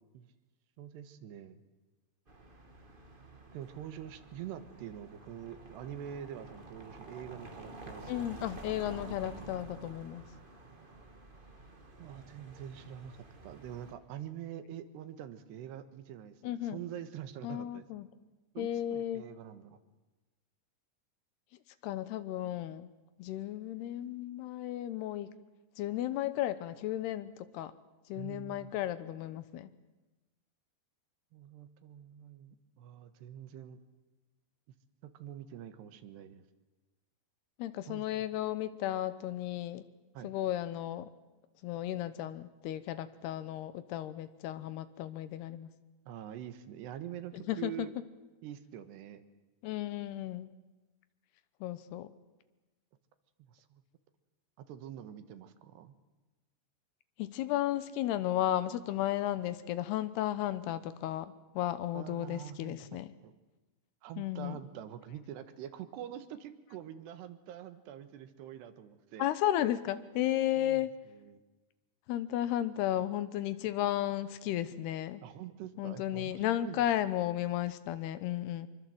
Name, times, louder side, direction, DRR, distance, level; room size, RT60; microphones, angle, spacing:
voice 1, 0.8-1.6 3.5-8.4 12.0-17.9 18.6-19.8 28.2-28.7 31.3-33.8 35.0-36.4 37.9-38.1 40.2-40.3 46.1-47.9 48.4-49.2 53.5-53.8 54.6-56.0 61.9-63.3 64.0-69.3 70.6-71.4 75.2-77.0, right 10 dB, 80° right, 11 dB, 3.4 m, -45 dB
sound 1, 2.3-13.9, right 2 dB, 55° right, 0.5 m, -50 dB
voice 2, 8.1-10.2 16.4-16.8 17.4-18.1 18.6-19.2 21.8-22.9 23.2-25.3 25.8-27.7 28.1-29.7 37.6-39.8 40.2-41.1 41.6-45.7 47.3-47.9 49.6-50.5 51.6-52.1 57.2-63.1 64.2-64.6 69.2-70.9 72.1-75.2 75.8-78.7, left 12 dB, 75° left, 14 dB, 2.8 m, -34 dB
25.5 x 23.5 x 7.8 m, 1.1 s
omnidirectional pair, 4.9 m